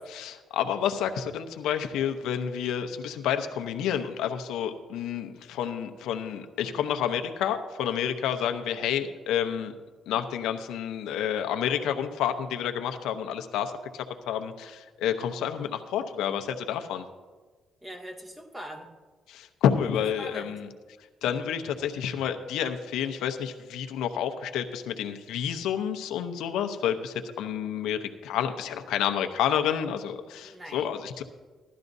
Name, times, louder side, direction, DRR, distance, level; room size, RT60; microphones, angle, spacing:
voice 1, 0.0-9.7 10.1-17.0 19.3-20.7 21.2-31.2, left 9 dB, 90° left, 7 dB, 0.8 m, -29 dB
voice 2, 17.8-18.9 20.2-20.5 30.4-31.0, equal, 15° right, 1 dB, 2.0 m, -41 dB
16.0 x 12.0 x 2.7 m, 1.4 s
cardioid pair, 90°, 0 cm